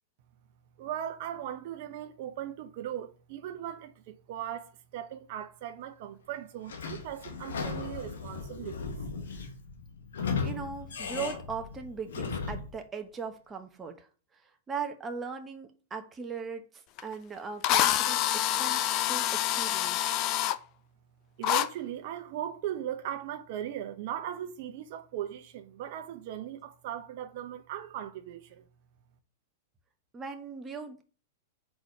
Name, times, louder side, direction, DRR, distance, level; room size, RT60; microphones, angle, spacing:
voice 1, 0.8-8.9 21.4-28.6, right 11 dB, 55° right, 0.8 m, -38 dB
Sliding door / Squeak, 6.7-12.8, left 5 dB, 80° left, 1.2 m, -36 dB
voice 2, 10.4-20.2 30.1-31.0, right 5 dB, 20° right, 1.0 m, -39 dB
Drill, 17.0-17.1 17.6-20.6 21.4-21.7, left 13 dB, 40° left, 0.5 m, -27 dB
4.8 x 4.1 x 4.8 m
hypercardioid pair, 120°, 0 cm